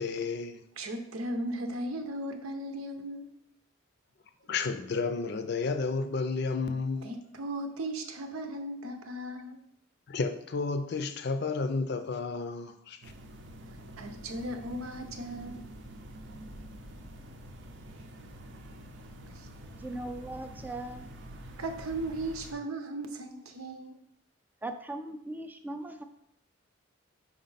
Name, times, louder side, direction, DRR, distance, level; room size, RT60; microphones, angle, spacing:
voice 1, 0.0-0.6 4.5-7.2 10.1-13.1, left 4 dB, 50° left, 9 dB, 0.5 m, -32 dB
voice 2, 0.8-3.3 7.0-9.6 14.0-15.6 19.3-19.5 21.6-24.0, right 1 dB, 90° right, 6 dB, 0.8 m, -37 dB
sound 1, 13.0-22.5, right 1 dB, 60° right, 0.6 m, -47 dB
voice 3, 19.8-21.1 24.6-26.0, right 1 dB, 10° right, 6 dB, 0.3 m, -39 dB
5.1 x 4.9 x 4.0 m, 0.76 s
head